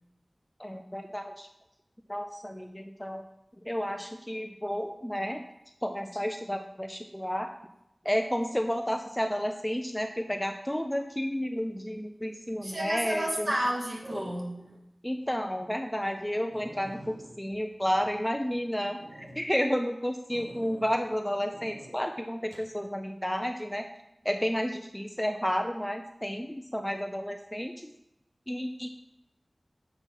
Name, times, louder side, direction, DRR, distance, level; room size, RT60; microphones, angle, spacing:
voice 1, 0.6-1.5 2.1-3.2 3.7-5.4 5.8-7.5 8.0-13.5 15.0-23.8 24.2-27.9 28.5-28.9, equal, 10° left, 5 dB, 0.5 m, -31 dB
sound 1, 12.4-12.8 14.0-14.8 15.2-15.3 15.8-15.9 16.2-16.3 16.5-18.5 19.0-19.4 20.3-21.1 21.5-21.9 22.5-22.7, right 1 dB, 85° right, 1.6 m, -48 dB
voice 2, 12.6-14.6, right 1 dB, 40° right, -2 dB, 1.8 m, -31 dB
7.1 x 4.4 x 5.4 m, 0.84 s
wide cardioid pair, 65°, 0 cm